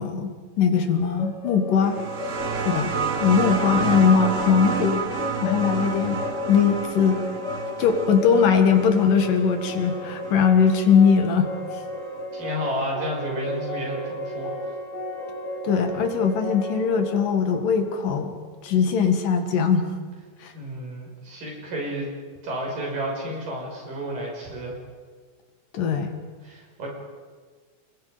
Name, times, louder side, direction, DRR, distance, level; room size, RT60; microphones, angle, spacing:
voice 1, 0.0-2.0 2.7-2.9 3.2-5.0 5.4-6.2 6.5-7.2 7.8-11.5 15.6-18.4 18.6-19.9 20.4-20.5 25.7-26.1, left 6 dB, 80° left, 6 dB, 3.6 m, -20 dB
sound 1, 0.9-18.7, left 2 dB, 60° left, 4.3 m, -34 dB
sound 2, 1.8-11.1 12.2-12.3, right 5 dB, 40° right, 1.1 m, -30 dB
voice 2, 3.6-4.1 12.3-14.6 20.5-22.1 22.4-24.8 26.4-26.9, equal, 80° right, -1 dB, 7.6 m, -31 dB
30.0 x 21.0 x 5.2 m, 1.5 s
omnidirectional pair, 3.8 m